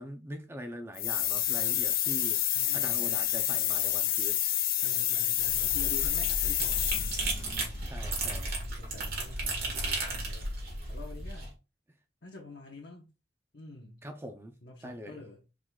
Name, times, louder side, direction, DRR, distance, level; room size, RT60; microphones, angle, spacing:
voice 1, 0.0-2.4 2.7-4.4 7.8-8.5 14.0-14.5 14.8-15.2, equal, 15° right, 0.5 m, -42 dB
sound 1, 1.0-7.4, left 12 dB, 55° left, 0.6 m, -28 dB
voice 2, 2.5-3.0 4.8-6.9 8.7-10.5 10.9-11.5 12.2-13.1 13.5-14.1 14.6-15.4, left 2 dB, 70° left, 1.1 m, -47 dB
sound 2, 5.4-11.5, right 2 dB, 55° right, 1.9 m, -34 dB
4.9 x 3.9 x 2.3 m
head